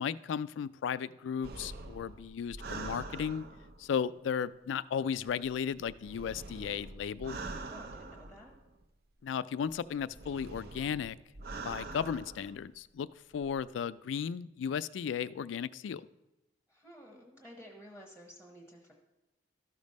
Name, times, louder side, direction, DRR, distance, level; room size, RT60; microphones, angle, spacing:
voice 1, 0.0-3.5 3.8-7.4 9.2-11.2 11.6-13.1 13.3-16.1, left 7 dB, 75° left, 17 dB, 0.3 m, -35 dB
sound 1, 1.4-3.9 5.2-8.8 9.7-12.6 13.3-13.7, right 3 dB, 55° right, 0.7 m, -45 dB
voice 2, 7.7-8.5 16.7-18.9, equal, 10° right, 0 dB, 1.0 m, -52 dB
13.0 x 5.2 x 5.3 m, 0.97 s
head